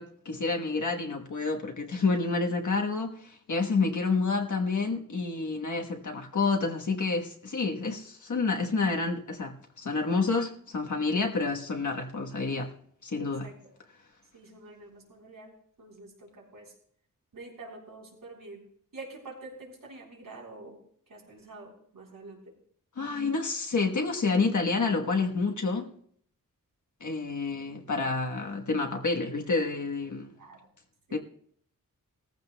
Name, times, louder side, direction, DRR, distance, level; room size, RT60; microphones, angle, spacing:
voice 1, 0.0-12.7 13.0-13.5 23.0-25.8 27.0-30.3 31.1-31.2, left 4 dB, 60° left, 1.3 m, -29 dB
voice 2, 13.1-13.7 14.3-15.5 15.8-16.7 17.3-18.6 18.9-20.8 21.1-22.4 30.3-30.6 31.1-31.2, right 3 dB, 80° right, 3.9 m, -47 dB
18.5 x 14.5 x 2.3 m
wide cardioid pair, 90°, 33 cm